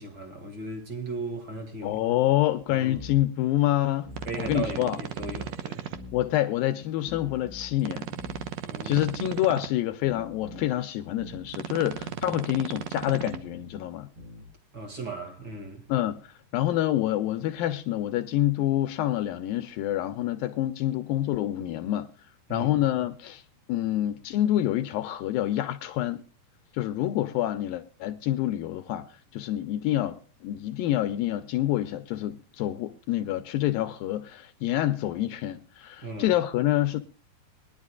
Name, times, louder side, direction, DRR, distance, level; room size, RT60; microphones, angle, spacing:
voice 1, 0.0-2.0 2.7-3.0 4.2-5.9 8.6-9.1 14.7-15.8 22.5-22.8 36.0-36.3, right 3 dB, 35° right, 2.1 m, -37 dB
voice 2, 1.8-4.1 4.4-5.0 6.1-8.2 8.8-14.1 15.9-16.2 16.5-22.1 22.5-23.4 23.7-26.2 26.7-29.1 29.3-37.0, left 13 dB, 80° left, 2.1 m, -27 dB
sound 1, 2.9-3.2 4.0-4.8 5.2-5.5 5.9-6.3 7.0-7.8 8.2-8.5 8.9-9.3 10.0-10.7 11.2-11.5 11.9-12.2 13.0-13.7 14.2-14.5, left 2 dB, 60° right, 8.5 m, -44 dB
sound 2, 4.1-6.0 7.8-9.7 11.5-13.4, right 10 dB, 85° right, 1.5 m, -36 dB
21.5 x 11.0 x 2.3 m
omnidirectional pair, 4.6 m